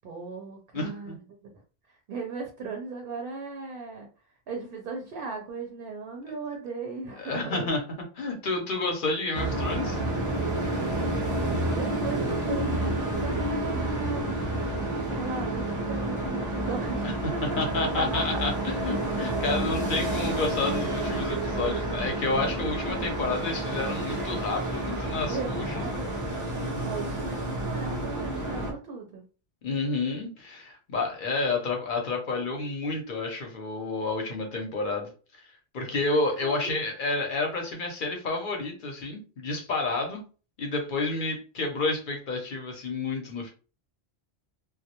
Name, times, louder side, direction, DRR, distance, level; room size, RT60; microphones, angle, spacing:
voice 1, 0.0-1.2 1.4-1.5 1.9-4.1 4.5-7.7 11.8-12.9 13.2-14.6 15.1-17.0 17.3-18.4 25.3-26.1 26.8-29.2 36.4-36.8, right 4 dB, 65° right, 2 dB, 0.7 m, -37 dB
voice 2, 0.7-1.2 7.2-7.8 8.2-10.0 17.0-17.1 17.4-26.0 29.6-35.1 35.7-40.2 40.6-43.5, left 3 dB, 55° left, 2 dB, 0.7 m, -30 dB
sound 1, 9.3-28.7, right 1 dB, 25° right, 0.4 m, -29 dB
2.2 x 2.0 x 2.8 m, 0.36 s
omnidirectional pair, 1.1 m